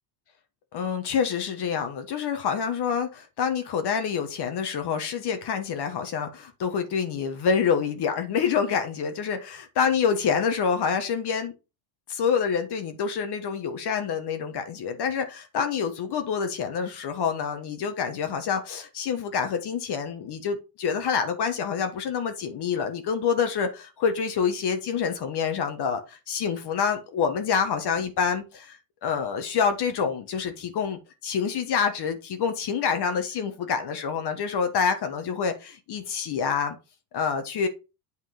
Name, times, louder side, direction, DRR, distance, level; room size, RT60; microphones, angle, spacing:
voice 1, 0.7-11.5 12.1-36.8 37.1-37.7, left 6 dB, 50° left, 1.5 m, -27 dB
8.5 x 3.6 x 4.9 m
supercardioid pair, 80°, 49 cm